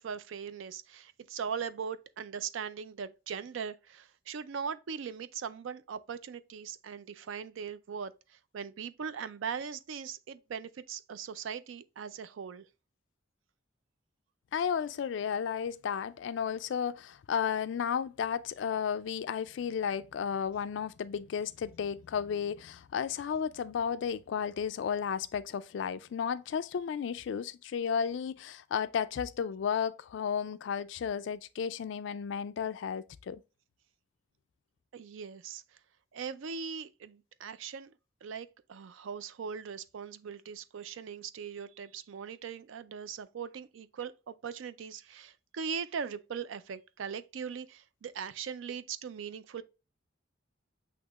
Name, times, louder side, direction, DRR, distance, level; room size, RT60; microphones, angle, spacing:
voice 1, 0.0-12.7 34.9-35.6 36.1-37.9 38.2-49.6, right 6 dB, 80° right, 0.4 m, -40 dB
voice 2, 14.5-33.4, left 7 dB, 70° left, 0.3 m, -33 dB
8.0 x 2.8 x 2.3 m
head